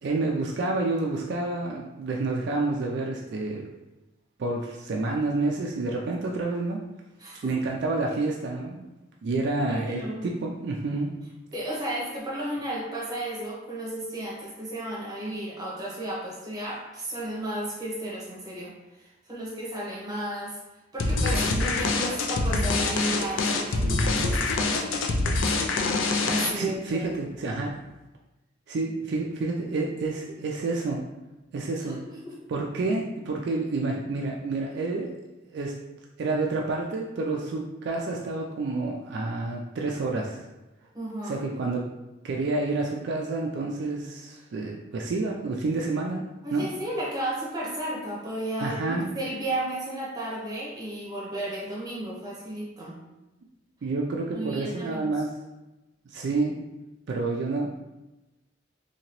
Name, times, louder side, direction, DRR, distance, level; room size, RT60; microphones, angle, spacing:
voice 1, 0.0-3.6 4.4-6.8 7.4-8.9 9.2-11.1 23.8-24.1 26.5-27.8 28.7-31.0 31.5-32.0 32.5-35.1 35.5-35.8 36.2-40.5 41.2-41.8 42.2-46.2 46.5-46.7 48.6-49.1 53.8-55.3 56.1-56.6 57.1-57.7, right 3 dB, 60° right, -1 dB, 0.3 m, -29 dB
voice 2, 7.2-7.6 9.6-10.3 11.5-20.6 20.9-24.8 26.3-27.0 31.9-32.0 32.2-32.4 40.9-41.4 46.4-53.0 54.3-55.1, right 1 dB, 20° right, -5 dB, 0.9 m, -34 dB
sound 1, 21.0-26.8, left 3 dB, 75° left, 0.4 m, -25 dB
2.8 x 2.8 x 2.9 m, 1.0 s
head